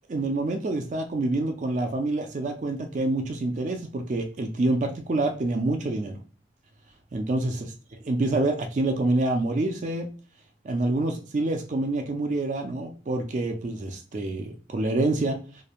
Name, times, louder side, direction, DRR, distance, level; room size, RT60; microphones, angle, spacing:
voice 1, 0.1-6.2 7.1-7.7 8.1-10.1 10.6-15.4, right 2 dB, 40° right, 4 dB, 0.4 m, -27 dB
2.9 x 2.2 x 2.4 m, 0.38 s
head